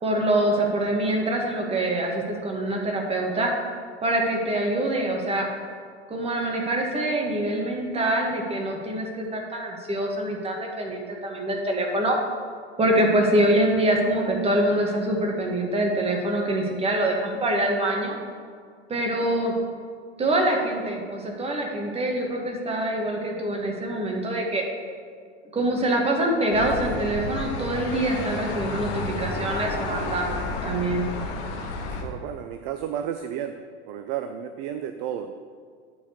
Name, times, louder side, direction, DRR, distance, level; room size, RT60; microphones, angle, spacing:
voice 1, 0.0-3.5 4.0-5.5 6.1-12.2 12.8-18.2 18.9-19.5 20.2-24.6 25.5-31.0, right 1 dB, 15° right, 0 dB, 1.8 m, -25 dB
sound 1, 26.5-32.0, left 3 dB, 45° left, 1.6 m, -31 dB
voice 2, 32.0-33.5 33.9-35.3, right 9 dB, 45° right, 9 dB, 0.5 m, -32 dB
9.8 x 4.7 x 6.6 m, 2.1 s
figure-of-eight pair, 90°, 34 cm